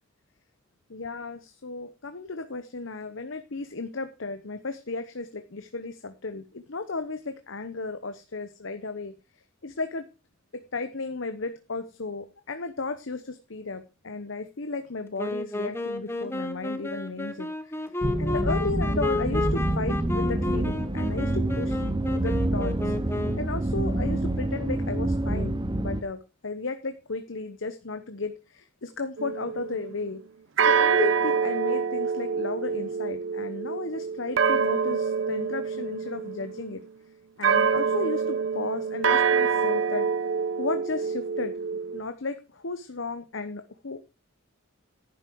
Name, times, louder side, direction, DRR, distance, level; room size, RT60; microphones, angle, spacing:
voice 1, 0.9-9.1 9.6-10.0 10.5-17.8 18.1-21.8 22.1-22.9 23.4-30.2 30.7-36.8 37.4-40.1 40.6-41.5 41.9-44.0, left 3 dB, 65° left, 9 dB, 1.0 m, -34 dB
Wind instrument woodwind instrument, 15.2-23.6, left 2 dB, 10° left, 1.1 m, -32 dB
sound 1, 18.0-26.0, right 1 dB, 20° right, 0.8 m, -27 dB
sound 2, 29.2-30.1 30.6-36.7 37.4-42.0, right 6 dB, 65° right, 0.7 m, -26 dB
11.0 x 9.5 x 4.7 m, 0.30 s
head